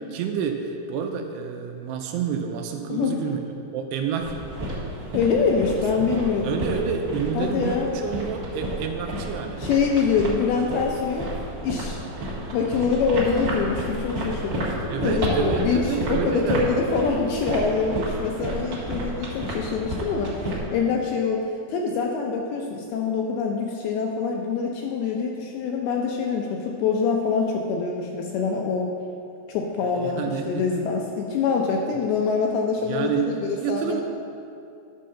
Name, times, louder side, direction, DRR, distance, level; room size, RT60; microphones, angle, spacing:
voice 1, 0.1-3.4 3.7-4.3 6.0-6.1 6.4-9.6 14.9-16.6 29.8-30.7 32.9-34.0, right 7 dB, 85° right, 4 dB, 2.6 m, -29 dB
voice 2, 2.9-3.3 5.1-6.7 7.4-7.9 9.6-11.3 11.6-12.0 12.5-21.4 21.7-28.9 29.5-34.0, left 5 dB, 80° left, 0 dB, 2.3 m, -25 dB
sound 1, 4.2-20.6, right 1 dB, 55° right, 1.2 m, -31 dB
11.0 x 4.3 x 6.4 m, 2.6 s
omnidirectional pair, 5.0 m